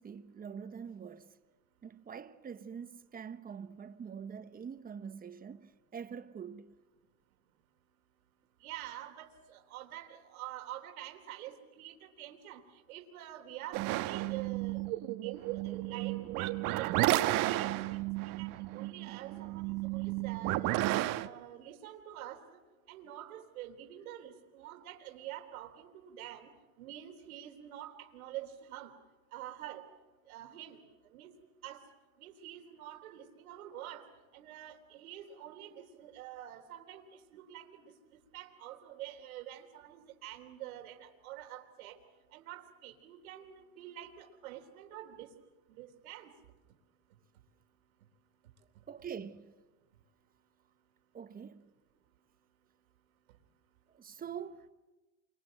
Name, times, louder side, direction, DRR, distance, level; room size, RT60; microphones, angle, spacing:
voice 1, 0.0-1.4 1.8-6.7 48.9-49.5 51.1-51.7 53.9-54.7, right 7 dB, 20° right, 1.3 m, -45 dB
voice 2, 8.6-14.8 15.2-17.2 17.5-18.0 18.4-20.8 21.2-22.4 22.9-26.5 26.8-28.9 29.3-29.8 30.3-30.8 31.1-31.3 31.6-31.8 32.2-34.1 34.3-37.9 38.3-42.0 42.3-45.3 45.7-46.3, right 12 dB, 85° right, 3.7 m, -47 dB
sound 1, 13.7-21.3, right 16 dB, 50° right, 1.3 m, -33 dB
28.5 x 25.0 x 7.7 m
supercardioid pair, 125°, 41 cm